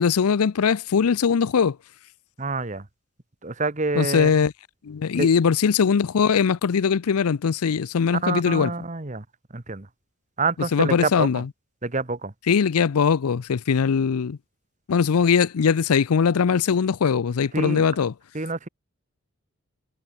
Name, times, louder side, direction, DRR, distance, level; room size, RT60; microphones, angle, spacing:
voice 1, 0.0-1.8 4.0-4.5 4.8-8.7 10.7-11.5 12.5-14.4 14.9-18.1, left 6 dB, 85° left, 0.5 m, -21 dB
voice 2, 2.4-2.8 3.4-4.3 5.1-5.3 8.2-9.2 9.5-9.9 10.4-11.4 11.8-12.3 17.5-17.8 18.3-18.7, right 3 dB, 35° right, 1.2 m, -27 dB
head